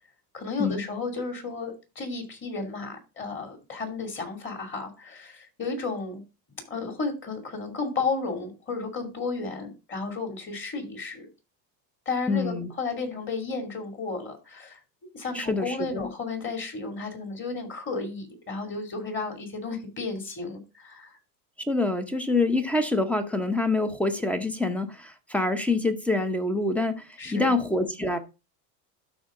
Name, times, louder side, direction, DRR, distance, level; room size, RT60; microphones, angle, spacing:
voice 1, 0.3-6.2 6.7-11.3 12.1-14.8 15.1-21.2 27.2-27.6, left 4 dB, 25° left, 2.6 m, -33 dB
voice 2, 12.3-12.7 15.3-16.1 21.7-28.2, left 2 dB, 5° left, 0.8 m, -26 dB
12.5 x 4.2 x 3.7 m
supercardioid pair, 140°, 46 cm